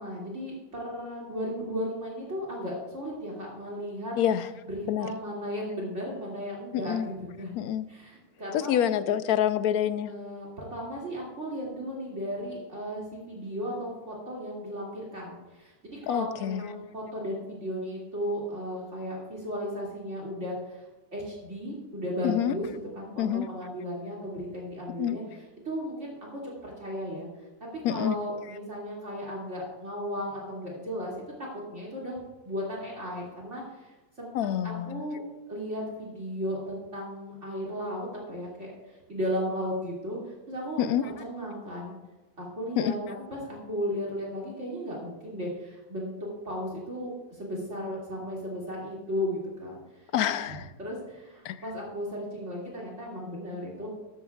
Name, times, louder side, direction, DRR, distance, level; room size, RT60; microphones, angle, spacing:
voice 1, 0.0-4.2 4.7-7.5 7.9-8.9 10.0-20.8 21.1-27.3 27.6-31.1 31.4-32.2 32.4-33.9 34.2-34.3 34.6-35.2 35.5-41.9 42.4-49.8 50.5-53.9, equal, 50° right, -3 dB, 2.9 m, -35 dB
voice 2, 4.2-4.5 4.9-5.1 6.7-7.1 7.6-7.8 8.5-10.1 16.1-16.7 22.2-22.5 23.2-23.5 25.0-25.2 27.8-28.2 34.3-35.0 40.8-41.0 42.8-42.9 50.1-50.7 51.4-51.6, left 10 dB, 75° left, 12 dB, 1.1 m, -27 dB
13.5 x 13.5 x 2.4 m, 1.1 s
omnidirectional pair, 1.6 m